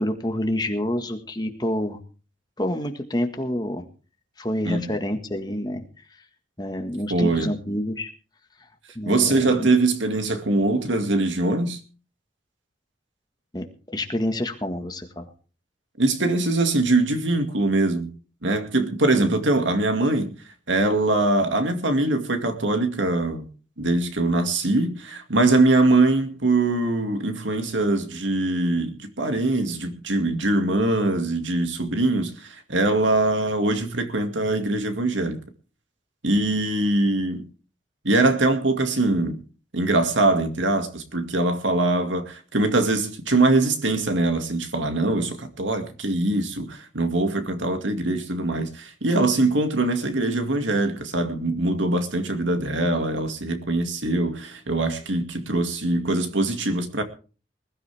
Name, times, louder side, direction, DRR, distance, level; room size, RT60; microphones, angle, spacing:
voice 1, 0.0-2.0 2.6-3.9 4.4-5.8 6.6-8.1 8.9-9.7 13.5-13.7 13.9-15.3, left 1 dB, 20° left, 1.7 m, -28 dB
voice 2, 7.1-7.5 9.1-11.8 16.0-18.1 18.4-20.3 20.7-23.5 23.8-35.4 36.2-37.5 38.0-39.4 39.7-57.0, right 2 dB, 90° right, 2.3 m, -22 dB
20.5 x 13.5 x 3.5 m
head